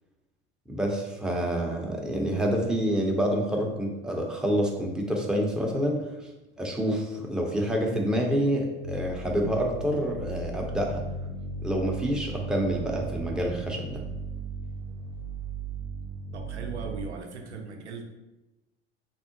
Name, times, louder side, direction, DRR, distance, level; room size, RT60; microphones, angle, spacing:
voice 1, 0.7-6.3 6.6-11.0 11.6-14.0, equal, ahead, -1 dB, 0.6 m, -27 dB
sound 1, 8.8-17.0, right 3 dB, 80° left, 0.7 m, -36 dB
voice 2, 16.3-18.0, right 4 dB, 85° right, 4 dB, 0.5 m, -38 dB
3.6 x 2.0 x 2.9 m, 1.0 s
figure-of-eight pair, 65°, 33 cm